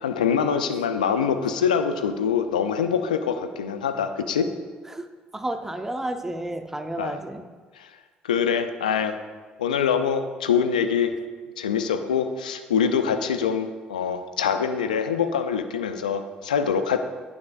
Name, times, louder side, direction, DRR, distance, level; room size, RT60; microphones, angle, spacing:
voice 1, 0.0-4.5 7.0-7.2 7.8-7.9 8.2-9.2 9.6-11.1 11.6-17.0, left 7 dB, 85° left, 9 dB, 0.3 m, -24 dB
voice 2, 5.3-7.5, right 1 dB, 10° right, 6 dB, 0.6 m, -31 dB
9.5 x 5.3 x 2.4 m, 1.4 s
figure-of-eight pair, 50°, 4 cm